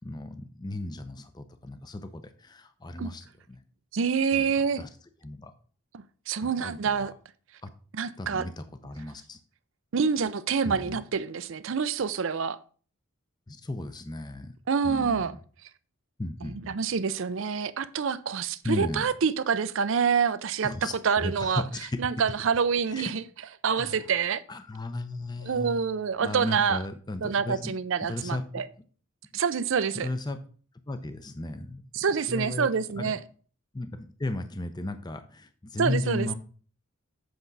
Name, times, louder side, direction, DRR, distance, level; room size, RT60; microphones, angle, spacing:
voice 1, 0.0-3.6 4.3-4.4 4.8-4.9 5.2-5.5 6.4-7.1 7.6-7.7 8.2-9.4 10.6-11.0 13.5-14.5 14.8-15.4 16.2-16.8 18.6-19.0 20.6-20.9 21.2-22.0 22.9-23.1 23.7-24.0 24.5-25.9 26.2-27.7 28.0-28.4 29.9-30.4 30.9-32.7 32.9-33.2 33.7-36.3, left 2 dB, 20° left, 0.5 m, -35 dB
voice 2, 3.9-4.8 5.9-7.1 7.9-8.5 9.9-12.6 14.7-15.4 16.4-21.6 22.0-23.2 23.6-24.4 25.4-26.8 27.2-28.7 29.3-30.1 31.9-33.2 35.8-36.3, right 6 dB, 65° right, 0.5 m, -27 dB
7.9 x 6.0 x 4.0 m
head